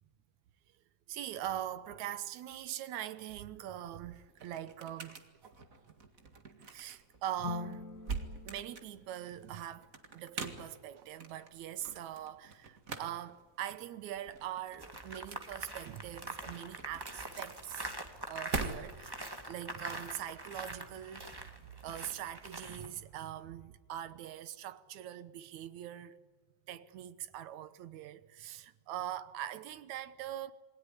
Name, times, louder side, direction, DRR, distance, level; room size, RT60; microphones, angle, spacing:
voice 1, 1.1-5.2 6.7-7.9 8.4-17.9 18.3-21.5 21.8-26.2 26.7-30.5, right 11 dB, 75° right, 2.3 m, -42 dB
sound 1, 3.7-19.2, right 4 dB, 30° right, 1.9 m, -45 dB
sound 2, 7.4-9.8, left 7 dB, 65° left, 0.8 m, -45 dB
sound 3, 14.8-22.9, right 1 dB, 10° right, 1.2 m, -44 dB
28.0 x 20.5 x 10.0 m
omnidirectional pair, 3.4 m